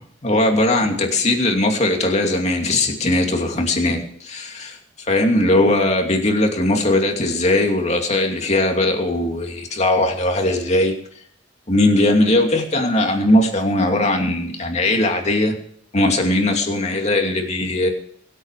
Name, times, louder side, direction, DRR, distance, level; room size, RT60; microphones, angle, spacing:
voice 1, 0.2-11.0 11.7-15.6 15.9-17.9, left 1 dB, 35° left, 3 dB, 2.7 m, -19 dB
23.0 x 8.6 x 4.9 m, 0.62 s
head